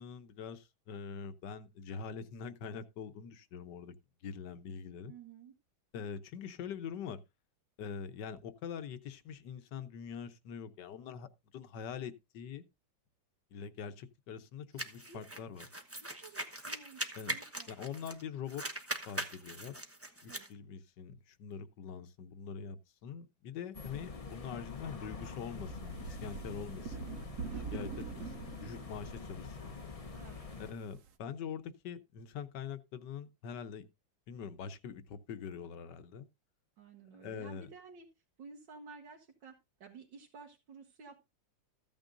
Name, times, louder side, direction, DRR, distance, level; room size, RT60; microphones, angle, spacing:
voice 1, 0.0-3.9 4.2-5.1 5.9-7.2 7.8-12.6 13.5-15.7 17.2-17.3 17.7-19.7 20.2-27.2 27.7-29.8 30.6-33.8 34.3-36.3 37.2-37.7, left 7 dB, 70° left, 1.4 m, -44 dB
voice 2, 5.1-5.5 15.1-15.3 16.0-17.0 17.3-17.7 20.3-20.5 26.4-26.8 27.5-27.8 28.1-28.3 30.1-30.4 36.8-38.1 38.4-41.3, right 5 dB, 75° right, 2.2 m, -53 dB
sound 1, 14.8-18.2 18.5-20.5, right 1 dB, 10° right, 0.8 m, -41 dB
sound 2, 23.7-30.7, left 4 dB, 35° left, 0.5 m, -46 dB
sound 3, 25.2-31.1, right 5 dB, 60° right, 0.8 m, -45 dB
14.5 x 9.0 x 2.6 m
omnidirectional pair, 2.0 m